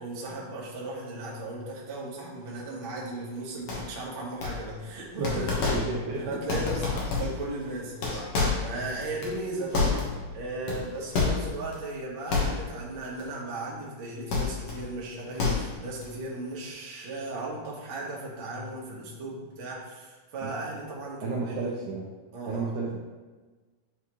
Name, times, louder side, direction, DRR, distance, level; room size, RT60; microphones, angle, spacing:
voice 1, 0.0-5.7 6.2-21.7 22.3-22.6, right 2 dB, 55° right, -5 dB, 1.4 m, -36 dB
sound 1, 3.7-4.0 4.4-4.9 5.2-6.1 6.4-7.5 7.8-10.3 10.7-11.7 12.3-12.9 13.2-13.4 14.3-14.8 15.2-16.0, left 4 dB, 65° left, 1.8 m, -29 dB
voice 2, 5.2-6.4 21.2-22.0 22.5-23.0, right 3 dB, 80° right, -3 dB, 1.8 m, -32 dB
9.8 x 3.6 x 3.0 m, 1.3 s
omnidirectional pair, 4.2 m